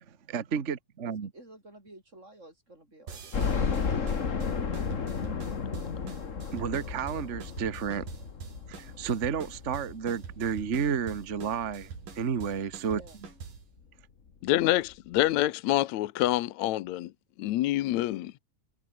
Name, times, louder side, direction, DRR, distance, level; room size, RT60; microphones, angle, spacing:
voice 1, 0.3-1.3 6.5-8.1 8.7-13.0, right 7 dB, 55° right, 0.7 m, -31 dB
voice 2, 1.1-4.0 12.9-13.2, right 1 dB, 20° right, 7.3 m, -52 dB
sound 1, 3.1-13.7, right 6 dB, 80° right, 5.5 m, -45 dB
sound 2, 3.3-12.2 12.7-12.8 13.2-13.3 14.5-14.6 14.9-15.0, left 5 dB, 35° left, 1.2 m, -33 dB
voice 3, 14.4-17.1 17.4-18.3, left 15 dB, 70° left, 2.0 m, -26 dB
omnidirectional pair, 3.7 m